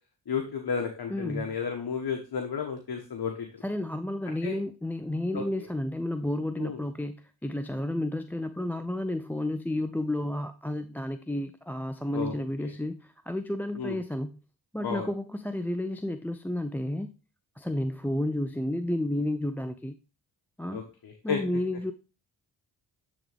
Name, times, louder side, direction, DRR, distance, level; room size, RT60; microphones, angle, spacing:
voice 1, 0.3-3.5 4.4-4.6 5.3-5.4 6.6-6.8 12.1-12.3 12.6-12.7 13.7-14.0 14.8-15.1 20.7-21.4, left 6 dB, 55° left, 3 dB, 1.4 m, -32 dB
voice 2, 1.1-1.5 3.6-14.4 14.7-17.1 17.6-20.0 20.6-20.8 21.2-21.9, left 1 dB, 5° left, 9 dB, 0.5 m, -31 dB
10.0 x 3.8 x 3.5 m, 0.33 s
supercardioid pair, 45°, 45 cm